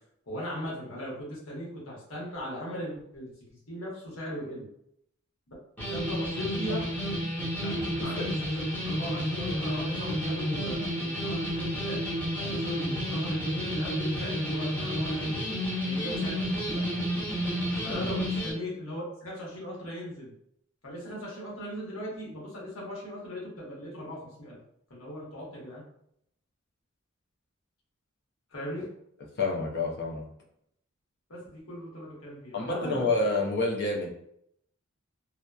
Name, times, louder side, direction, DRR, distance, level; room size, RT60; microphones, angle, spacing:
voice 1, 0.3-3.3 3.7-4.7 5.9-6.8 7.6-12.0 12.3-15.3 15.8-16.9 17.8-20.3 20.8-24.6 24.9-25.8 28.5-28.9 31.3-33.1, equal, 80° left, -4 dB, 1.1 m, -38 dB
sound 1, 5.8-18.5, equal, 10° left, 0.8 m, -31 dB
voice 2, 29.4-30.2 32.5-34.1, left 3 dB, 55° left, 0 dB, 0.5 m, -28 dB
2.7 x 2.1 x 2.3 m, 0.74 s
head